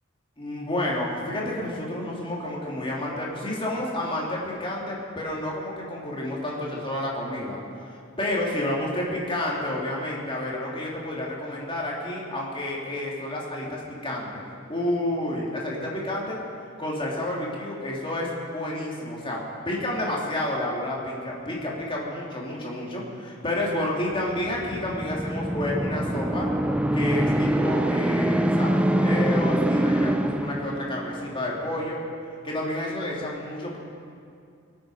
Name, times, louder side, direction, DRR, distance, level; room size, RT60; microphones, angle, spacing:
voice 1, 0.4-7.6 7.9-14.4 14.7-16.4 16.8-19.4 19.6-26.5 26.9-32.0 32.4-33.8, left 1 dB, 25° left, -4 dB, 2.9 m, -30 dB
sound 1, 24.3-31.3, right 1 dB, 5° right, 0.4 m, -24 dB
25.0 x 8.7 x 5.0 m, 2.4 s
head